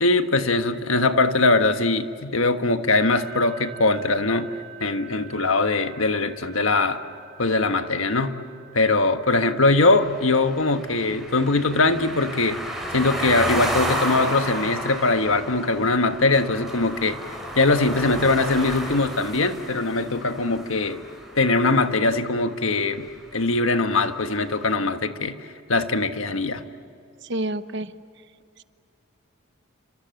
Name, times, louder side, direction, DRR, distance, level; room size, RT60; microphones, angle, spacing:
voice 1, 0.0-4.5 4.8-7.0 7.4-8.4 8.7-12.6 12.9-17.2 17.5-21.0 21.3-23.1 23.3-25.3 25.7-26.6, left 3 dB, 85° left, 8 dB, 1.5 m, -21 dB
sound 1, 2.9-16.8, right 8 dB, 35° left, 5.8 m, -48 dB
sound 2, 9.8-21.9, equal, ahead, 6.1 m, -32 dB
voice 2, 27.2-27.9, right 1 dB, 60° right, 11 dB, 1.0 m, -28 dB
29.5 x 26.0 x 7.9 m, 2.5 s
head